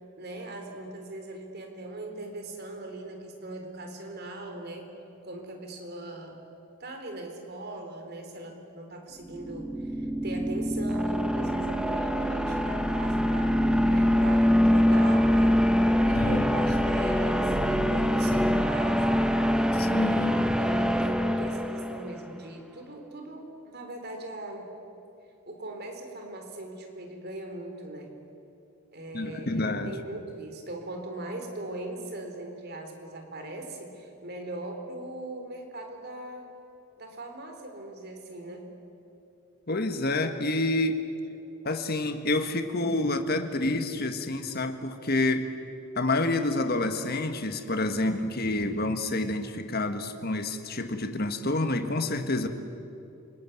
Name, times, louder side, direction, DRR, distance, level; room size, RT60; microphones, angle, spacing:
voice 1, 0.2-4.9 5.2-6.4 6.8-15.6 16.1-19.4 20.2-24.7 25.5-28.1 28.9-36.5 37.0-38.7, right 2 dB, 45° right, 4 dB, 3.9 m, -40 dB
sound 1, 9.3-22.2, equal, 5° right, 1.0 m, -24 dB
voice 2, 16.1-16.5 19.8-20.4 29.1-29.9 39.7-41.0 41.6-45.5 45.9-52.5, left 2 dB, 45° left, 7 dB, 1.7 m, -28 dB
28.5 x 20.0 x 9.5 m, 2.8 s
head